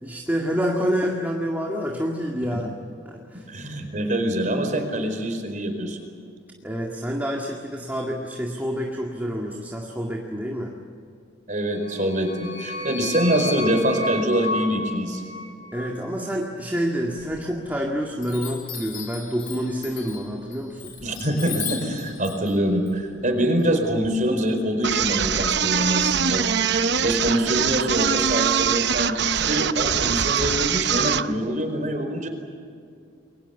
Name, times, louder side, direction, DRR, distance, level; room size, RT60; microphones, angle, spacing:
voice 1, 0.0-2.7 3.1-3.5 6.6-10.7 15.7-20.9, equal, 10° right, 0 dB, 2.0 m, -28 dB
voice 2, 3.5-6.0 11.5-15.2 21.0-32.3, equal, 40° right, 5 dB, 4.7 m, -25 dB
sound 1, 11.7-16.1, left 2 dB, 75° left, 7.3 m, -32 dB
Chime, 17.2-17.8 18.2-24.1, left 8 dB, 50° left, 5.1 m, -37 dB
sound 2, 24.8-31.3, right 7 dB, 60° right, 0.8 m, -23 dB
30.0 x 22.5 x 7.2 m, 2.4 s
head